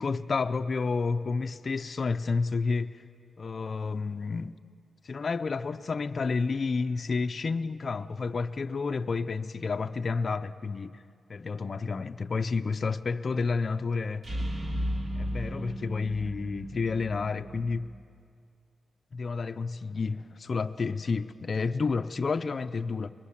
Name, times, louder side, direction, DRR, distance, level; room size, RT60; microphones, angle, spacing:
voice 1, 0.0-3.0 3.4-4.6 5.0-11.0 11.3-14.3 15.2-17.9 19.1-23.1, left 4 dB, 45° left, 0.6 m, -30 dB
sound 1, 14.2-18.0, equal, 45° right, 2.1 m, -35 dB
23.5 x 20.0 x 7.3 m
wide cardioid pair, 110°, 0 cm